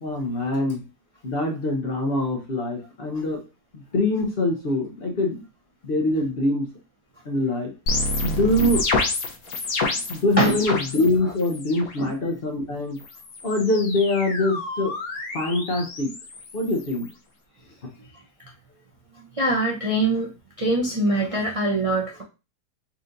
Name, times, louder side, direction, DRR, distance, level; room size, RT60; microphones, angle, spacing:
voice 1, 0.0-0.8 1.2-3.4 3.9-5.4 5.8-6.7 7.2-7.7 8.2-8.9 10.1-13.0 13.4-14.9 15.3-16.1 16.5-17.1, left 2 dB, 45° left, 2 dB, 0.8 m, -24 dB
sound 1, 7.9-11.1 11.4-12.0 13.0-17.1, left 2 dB, 65° left, 1.1 m, -29 dB
voice 2, 19.3-20.3 20.6-22.2, right 2 dB, 60° right, -2 dB, 0.3 m, -23 dB
4.4 x 3.9 x 2.5 m, 0.30 s
omnidirectional pair, 1.7 m